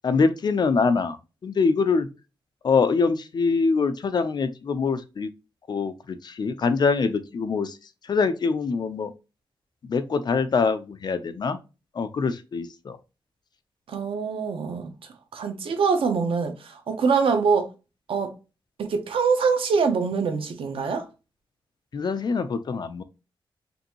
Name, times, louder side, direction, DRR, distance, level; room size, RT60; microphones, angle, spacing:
voice 1, 0.0-1.2 1.4-2.1 2.6-5.3 5.7-7.8 8.1-9.1 9.8-11.6 12.0-13.0 21.9-23.0, left 4 dB, 50° left, 0.5 m, -24 dB
voice 2, 13.9-14.9 15.3-17.7 18.1-18.3 18.8-21.1, right 5 dB, 85° right, 0.9 m, -24 dB
5.3 x 2.7 x 2.9 m
wide cardioid pair, 130°, 9 cm